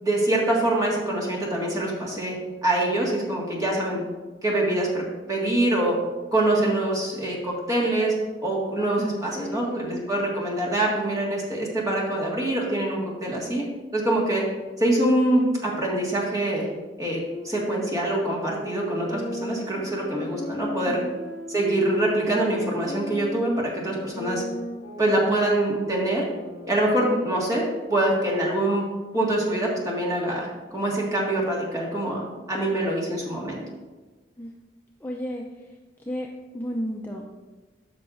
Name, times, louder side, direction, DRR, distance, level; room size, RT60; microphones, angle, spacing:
voice 1, 0.0-4.0 4.4-6.0 6.3-8.1 8.4-13.6 13.9-14.4 14.8-16.7 17.0-21.0 21.5-24.4 25.0-26.2 26.7-28.9 29.1-33.6, right 1 dB, 20° right, -4 dB, 1.8 m, -25 dB
voice 2, 9.0-10.0 20.8-21.2 34.4-34.5 35.0-35.4 36.1-36.3 36.5-37.3, equal, 10° left, -1 dB, 0.5 m, -33 dB
sound 1, 17.3-27.3, left 1 dB, 65° left, 2.1 m, -36 dB
13.0 x 5.9 x 2.6 m, 1.3 s
head